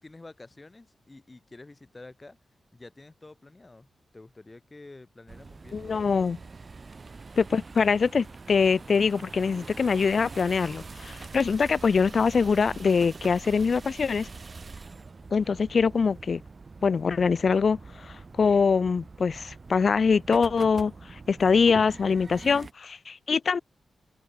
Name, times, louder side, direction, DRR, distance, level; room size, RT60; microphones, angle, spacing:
voice 1, 0.0-2.4 2.7-6.3, left 2 dB, 30° left, 1.5 m, -49 dB
sound 1, 5.3-22.7, right 4 dB, 50° right, 0.3 m, -44 dB
voice 2, 5.7-6.4 7.4-14.3 15.3-16.4 16.8-23.6, left 5 dB, 60° left, 0.3 m, -24 dB
supercardioid pair, 40°, 0 cm